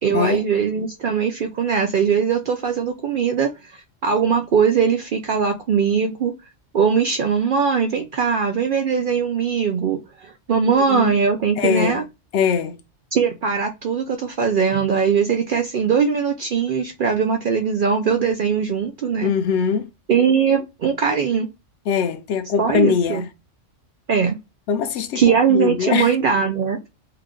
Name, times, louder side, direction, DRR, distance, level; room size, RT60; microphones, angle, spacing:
voice 1, 0.0-6.3 6.7-12.0 13.1-19.3 20.1-21.5 22.6-23.2 24.1-24.4 25.1-26.9, right 6 dB, 65° right, 0.5 m, -20 dB
voice 2, 10.7-11.2 11.6-12.0 12.3-12.8 19.2-19.9 21.9-23.3 24.7-25.2 25.5-26.1, left 6 dB, 65° left, 0.8 m, -21 dB
2.8 x 2.4 x 3.6 m
omnidirectional pair, 1.3 m